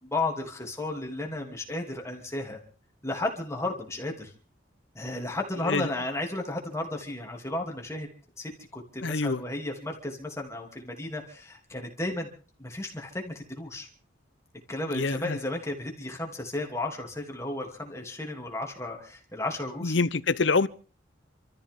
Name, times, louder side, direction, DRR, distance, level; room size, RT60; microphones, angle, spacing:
voice 1, 0.0-2.6 3.0-4.3 4.9-8.1 8.4-12.3 12.6-13.9 14.7-19.9, left 2 dB, 15° left, 3.0 m, -33 dB
voice 2, 9.0-9.4 14.9-15.4 19.8-20.7, left 4 dB, 70° left, 0.8 m, -26 dB
28.0 x 14.0 x 3.7 m
head